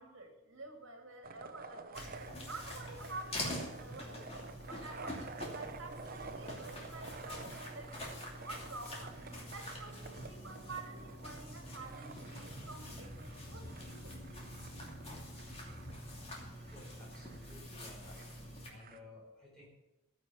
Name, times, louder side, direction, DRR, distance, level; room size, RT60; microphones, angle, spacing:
voice 1, 0.0-7.9 8.4-9.2 9.5-14.3, right 3 dB, 60° right, 3 dB, 2.8 m, -49 dB
sound 1, 1.2-19.0, right 4 dB, 40° right, 0.9 m, -51 dB
sound 2, 1.9-18.7, left 1 dB, 30° left, 2.8 m, -46 dB
voice 2, 16.6-18.2 18.7-19.7, left 2 dB, 5° left, -6 dB, 4.8 m, -56 dB
14.5 x 6.9 x 9.0 m, 0.94 s
head